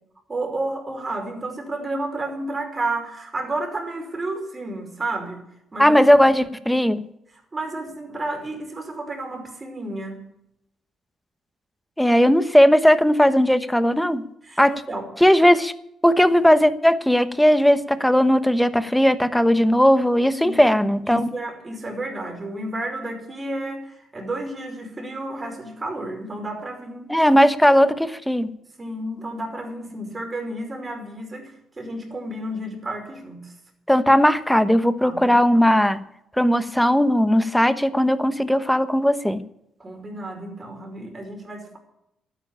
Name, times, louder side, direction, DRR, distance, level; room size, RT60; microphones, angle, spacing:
voice 1, 0.3-5.4 5.7-6.0 7.5-10.2 14.4-15.1 20.4-20.6 21.0-27.1 28.8-33.5 35.0-35.4 39.8-41.8, right 2 dB, 25° right, 2 dB, 5.3 m, -31 dB
voice 2, 5.8-7.0 12.0-14.2 14.6-14.8 15.2-15.7 16.0-21.3 27.1-28.5 33.9-36.0 36.4-39.4, equal, 5° left, 12 dB, 1.1 m, -17 dB
12.0 x 10.0 x 8.7 m, 0.79 s
cardioid pair, 90°, 0 cm